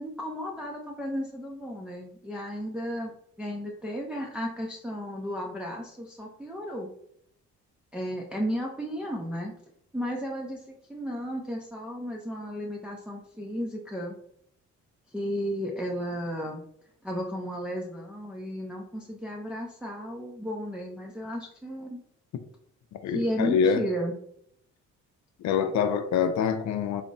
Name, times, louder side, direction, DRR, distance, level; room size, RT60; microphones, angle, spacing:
voice 1, 0.0-3.1 3.4-6.9 7.9-9.5 9.9-14.2 15.1-16.6 17.0-22.0 23.1-24.1, equal, 5° right, 0.5 m, -34 dB
voice 2, 23.0-23.8 25.4-27.0, left 7 dB, 65° left, 0.5 m, -25 dB
3.5 x 2.0 x 3.9 m
cardioid pair, 90°, 30 cm